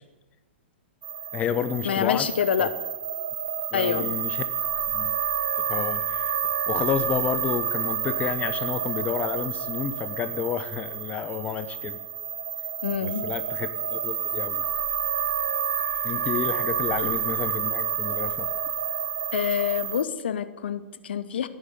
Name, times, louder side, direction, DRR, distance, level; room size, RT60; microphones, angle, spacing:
sound 1, 1.0-20.0, right 8 dB, 60° right, 0.9 m, -29 dB
voice 1, 1.3-2.3 2.6-2.7 3.7-4.5 4.9-5.1 5.7-6.3 6.7-12.0 13.0-14.6 16.0-18.5, left 8 dB, 20° left, 12 dB, 0.8 m, -30 dB
voice 2, 1.8-2.7 3.7-4.1 12.8-13.3 19.3-21.5, left 8 dB, 60° left, 13 dB, 1.0 m, -26 dB
17.0 x 9.0 x 6.9 m, 1.1 s
figure-of-eight pair, 105°, 6 cm